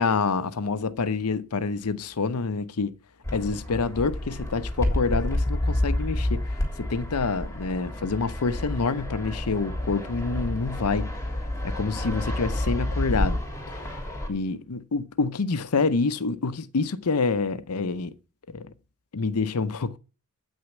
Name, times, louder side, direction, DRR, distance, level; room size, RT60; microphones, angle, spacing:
voice 1, 0.0-2.9 3.3-6.4 6.8-11.3 11.6-13.4 14.3-18.1 18.5-18.7 19.1-20.0, left 4 dB, 85° left, 0.7 m, -27 dB
Fixed-wing aircraft airplane, 3.2-14.3, left 1 dB, 10° left, 3.4 m, -29 dB
9.1 x 6.4 x 7.1 m
head